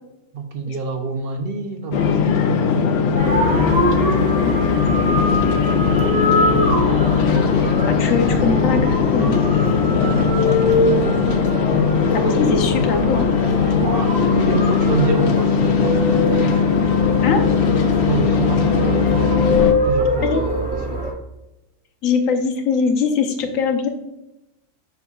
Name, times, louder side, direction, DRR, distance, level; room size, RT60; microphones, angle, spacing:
voice 1, 0.3-3.9 6.5-6.9 10.0-11.1 13.7-16.6 18.0-21.0, right 5 dB, 55° right, 5 dB, 0.8 m, -28 dB
sound 1, 1.9-19.7, left 6 dB, 65° left, 0.8 m, -19 dB
sound 2, 3.2-21.1, left 1 dB, 5° right, 1.3 m, -23 dB
Car passing by, 3.2-8.2, right 2 dB, 80° right, 1.8 m, -36 dB
voice 2, 7.9-9.4 12.1-13.2 17.2-17.4 20.2-20.4 22.0-23.9, left 5 dB, 80° left, 5 dB, 1.2 m, -21 dB
7.1 x 5.8 x 2.3 m, 0.94 s
omnidirectional pair, 1.4 m